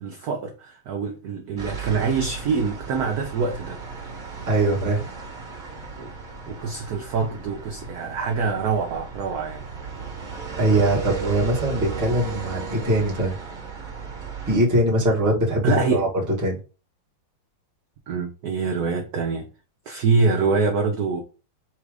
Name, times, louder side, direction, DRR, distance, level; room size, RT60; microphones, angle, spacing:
voice 1, 0.0-3.8 6.0-6.1 6.5-9.6 15.6-16.1 18.1-19.5 19.9-21.2, right 4 dB, 75° right, 0.8 m, -25 dB
sound 1, 1.6-14.6, right 5 dB, 30° right, 1.1 m, -35 dB
voice 2, 4.5-5.0 10.6-13.4 14.5-16.1 16.4-16.6, right 1 dB, 15° right, 0.7 m, -21 dB
4.3 x 2.4 x 4.7 m
omnidirectional pair, 2.3 m